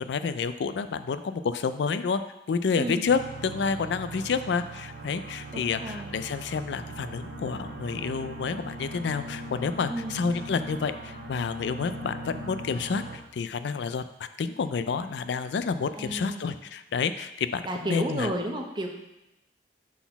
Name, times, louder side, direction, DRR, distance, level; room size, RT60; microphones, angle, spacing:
voice 1, 0.0-2.2 2.5-18.3, left 5 dB, 70° left, 11 dB, 0.4 m, -29 dB
voice 2, 2.8-3.1 5.5-6.2 9.9-10.2 16.0-16.5 17.6-18.9, right 1 dB, 25° right, 2 dB, 0.8 m, -32 dB
sound 1, 3.1-13.2, right 1 dB, 70° right, 1.1 m, -40 dB
6.0 x 4.0 x 5.7 m, 0.91 s
head